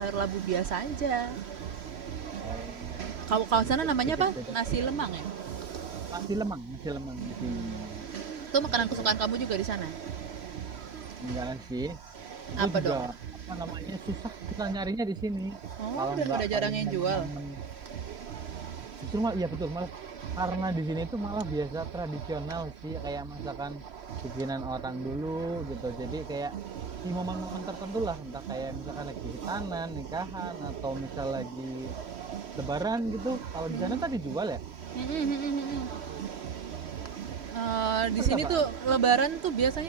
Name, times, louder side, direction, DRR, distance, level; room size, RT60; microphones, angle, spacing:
voice 1, 0.0-1.2 3.3-4.3 4.6-4.9 8.7-9.4 16.5-16.6 17.0-17.2 35.1-35.6 37.6-39.3 39.6-39.7, right 7 dB, 60° right, 0.9 m, -26 dB
voice 2, 2.4-4.9 6.1-8.1 8.8-9.1 11.2-12.0 12.5-13.1 13.5-15.6 16.0-17.6 19.0-19.9 20.3-23.8 24.2-26.6 27.0-31.9 32.6-34.6 38.2-38.7, right 2 dB, 5° right, 0.9 m, -34 dB
omnidirectional pair, 1.3 m